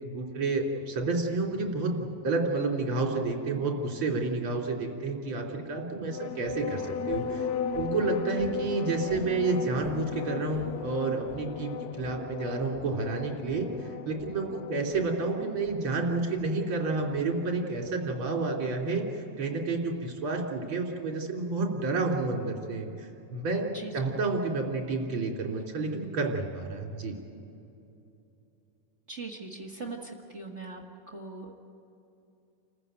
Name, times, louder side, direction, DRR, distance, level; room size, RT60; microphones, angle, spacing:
voice 1, 0.0-7.5 7.7-13.7 14.1-22.9 23.3-27.2, right 3 dB, 40° right, 0 dB, 3.8 m, -30 dB
sound 1, 6.0-17.9, left 7 dB, 85° left, 2.5 m, -37 dB
voice 2, 29.1-30.8 31.1-31.5, right 3 dB, 55° right, 0 dB, 0.7 m, -40 dB
28.5 x 15.0 x 9.2 m, 2.8 s
omnidirectional pair, 4.0 m